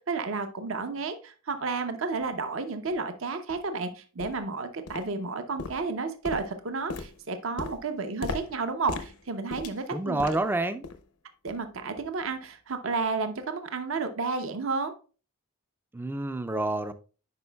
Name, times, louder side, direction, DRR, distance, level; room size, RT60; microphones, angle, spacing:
voice 1, 0.0-10.4 11.4-14.9, right 4 dB, 60° right, 8 dB, 0.7 m, -32 dB
sound 1, 2.2-2.3 2.9-3.0 3.5-3.7 4.2-4.5 4.9-5.3 5.6-10.5 10.8-11.1 11.5-11.7 12.2-12.3, left 3 dB, 85° left, 0.8 m, -39 dB
voice 2, 9.9-10.8 15.9-16.9, right 2 dB, 10° right, 11 dB, 0.3 m, -28 dB
9.5 x 5.0 x 2.3 m, 0.36 s
head